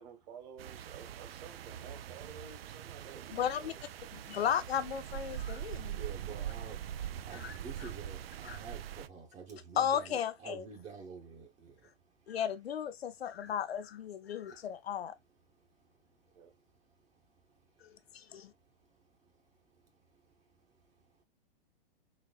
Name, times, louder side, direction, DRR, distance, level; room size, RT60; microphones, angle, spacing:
voice 1, 0.0-3.8 16.3-16.5, right 6 dB, 45° right, 1.4 m, -52 dB
sound 1, 0.6-9.1, right 10 dB, 75° right, 0.5 m, -43 dB
voice 2, 3.3-3.7 4.1-6.0 7.3-7.9 8.4-8.6 9.8-10.6 12.3-15.1 17.8-18.5, left 9 dB, 80° left, 0.7 m, -35 dB
voice 3, 5.8-11.9 14.5-14.6, right 5 dB, 25° right, 0.9 m, -48 dB
4.1 x 2.9 x 2.3 m
hypercardioid pair, 115°, 30 cm